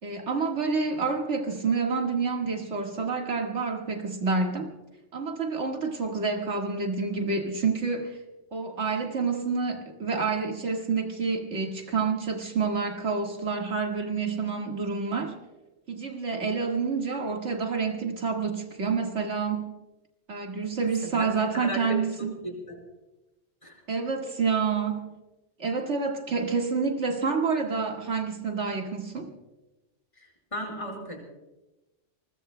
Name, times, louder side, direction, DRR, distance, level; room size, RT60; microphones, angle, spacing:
voice 1, 0.0-4.7 5.1-8.2 8.5-15.3 15.9-19.7 20.3-22.4 23.9-25.1 25.6-29.3, right 4 dB, 70° right, 2 dB, 2.0 m, -28 dB
voice 2, 21.1-21.8 22.2-22.8 23.6-23.7 30.5-31.2, equal, 25° left, 0 dB, 4.8 m, -35 dB
28.0 x 21.5 x 2.2 m, 1.0 s
omnidirectional pair, 1.2 m